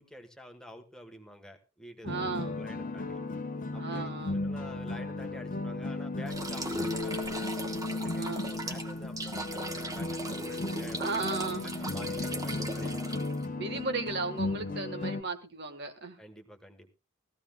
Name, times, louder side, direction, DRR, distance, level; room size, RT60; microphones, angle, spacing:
voice 1, 0.0-3.2 3.7-7.5 7.9-11.0 11.6-13.1 16.2-16.9, equal, 5° left, 4 dB, 1.3 m, -49 dB
voice 2, 2.0-2.6 3.8-4.4 8.2-8.5 11.0-12.1 13.5-16.2, right 3 dB, 50° right, 7 dB, 1.4 m, -35 dB
sound 1, 2.1-15.2, left 2 dB, 40° left, 0.8 m, -35 dB
sound 2, 6.3-13.5, right 1 dB, 15° right, 1.1 m, -38 dB
18.5 x 14.5 x 2.3 m, 0.28 s
head